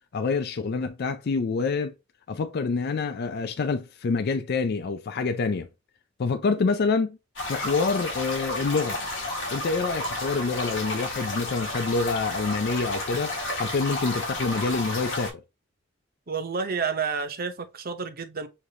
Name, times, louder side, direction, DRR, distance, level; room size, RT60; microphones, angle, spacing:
voice 1, 0.1-1.9 2.3-5.7 6.2-7.2 7.5-9.0 9.5-15.4, left 4 dB, 50° left, 0.4 m, -27 dB
sound 1, 7.4-15.3, left 1 dB, 70° left, 1.9 m, -32 dB
voice 2, 16.3-18.5, right 5 dB, 50° right, 0.8 m, -30 dB
6.5 x 2.5 x 2.8 m
head